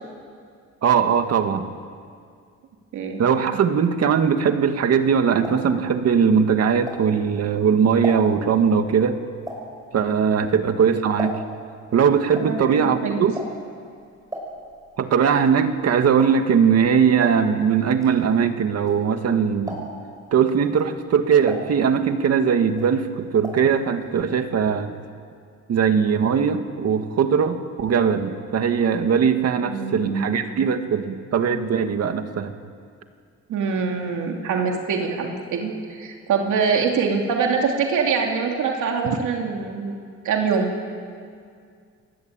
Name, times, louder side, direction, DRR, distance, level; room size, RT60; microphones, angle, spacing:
voice 1, 0.8-1.7 3.2-9.2 9.9-11.4 11.9-13.3 15.0-19.9 20.3-25.0 25.7-32.5 39.0-39.2, right 7 dB, 60° right, 7 dB, 2.0 m, -20 dB
sound 1, 4.9-7.4 7.8-11.7 12.0-19.3 19.6-20.2 20.6-22.4 22.7-23.7 24.0-24.1 24.4-24.5, right 1 dB, 10° right, 6.0 m, -36 dB
voice 2, 12.4-13.2 29.7-30.2 33.5-40.0 40.2-40.7, right 5 dB, 90° right, 1 dB, 3.2 m, -24 dB
29.5 x 22.0 x 9.1 m, 2.2 s
wide cardioid pair, 165°, 29 cm